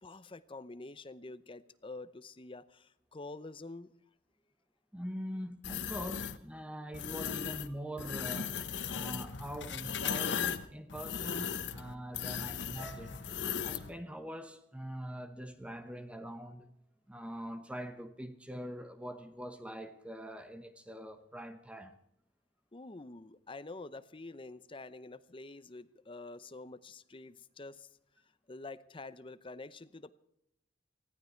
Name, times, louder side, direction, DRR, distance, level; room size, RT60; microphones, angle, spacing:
voice 1, 0.0-3.9 22.7-27.9 28.5-30.1, left 2 dB, 30° left, 0.7 m, -47 dB
voice 2, 4.9-8.6 8.9-13.3 13.6-16.7 17.1-22.0, equal, 5° right, 0.9 m, -43 dB
sound 1, 5.6-6.4 6.9-7.7 8.0-13.9, left 7 dB, 85° left, 1.0 m, -37 dB
sound 2, 12.8-17.0 17.2-18.0 18.6-18.8, right 1 dB, 30° right, 5.0 m, -59 dB
19.5 x 14.5 x 4.5 m
head